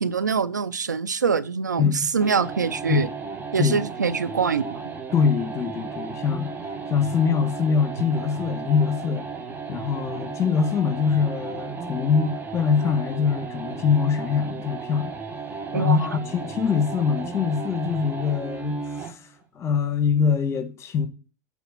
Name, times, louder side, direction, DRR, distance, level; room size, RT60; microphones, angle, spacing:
voice 1, 0.0-3.1 3.5-4.8 15.7-16.0, right 5 dB, 90° right, 0.6 m, -24 dB
voice 2, 1.8-2.1 2.9-3.1 3.6-3.8 5.1-6.5 6.9-9.2 9.7-15.1 15.7-19.3 19.5-21.1, left 6 dB, 30° left, 1.5 m, -23 dB
sound 1, 2.2-19.2, right 5 dB, 20° right, 1.4 m, -35 dB
8.2 x 4.1 x 5.7 m
hypercardioid pair, 90°, 9 cm